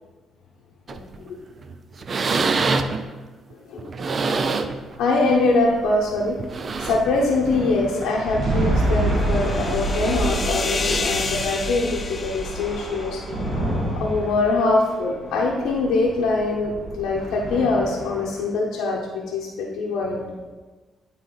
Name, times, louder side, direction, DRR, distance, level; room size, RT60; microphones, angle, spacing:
voice 1, 0.9-1.3 2.1-2.4 3.7-3.9 5.0-6.4 6.8-13.2 14.0-20.2, left 3 dB, 90° left, -3 dB, 0.9 m, -23 dB
sound 1, 0.9-1.2 1.6-1.7 2.0-3.1 3.8-4.9 5.3-5.5 6.4-7.2 8.2-8.3, right 4 dB, 45° right, 0.4 m, -25 dB
sound 2, 4.8-18.4, right 1 dB, 65° right, 1.7 m, -28 dB
sound 3, 8.1-13.7, left 4 dB, 30° left, 0.6 m, -31 dB
9.3 x 3.7 x 3.9 m, 1.3 s
cardioid pair, 90°, 0 cm